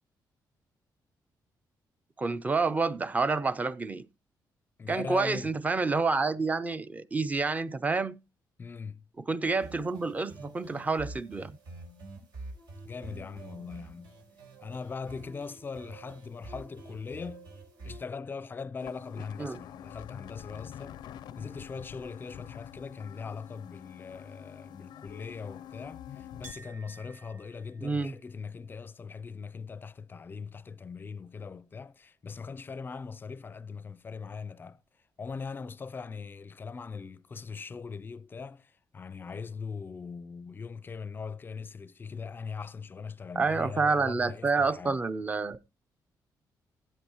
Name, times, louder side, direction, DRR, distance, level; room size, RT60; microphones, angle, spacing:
voice 1, 2.2-4.1 4.9-8.2 9.2-11.6 19.4-19.6 27.8-28.1 43.4-45.6, right 4 dB, 20° right, 0.5 m, -28 dB
voice 2, 4.8-5.5 8.6-9.1 12.8-14.2 14.6-17.5 17.8-21.0 21.4-34.8 35.2-45.0, left 5 dB, 30° left, 0.5 m, -41 dB
sound 1, 9.4-18.0, right 2 dB, 85° right, 4.4 m, -47 dB
sound 2, 18.8-26.5, left 10 dB, 85° left, 0.5 m, -46 dB
Chink clink, 26.4-31.9 32.2-33.1, right 4 dB, 40° right, 4.9 m, -58 dB
15.0 x 8.5 x 2.9 m
cardioid pair, 130°, 7 cm